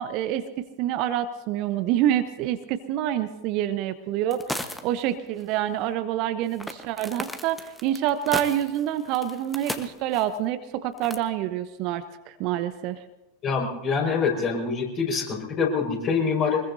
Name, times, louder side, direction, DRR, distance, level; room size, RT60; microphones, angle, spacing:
voice 1, 0.0-13.0, right 11 dB, 45° right, 11 dB, 0.9 m, -27 dB
sound 1, 4.3-5.0 5.3-5.4 6.6-10.3 11.0-11.2, equal, ahead, 1.2 m, -35 dB
voice 2, 13.4-16.6, left 5 dB, 35° left, -1 dB, 5.2 m, -25 dB
24.0 x 21.5 x 2.7 m, 0.99 s
figure-of-eight pair, 85°, 0 cm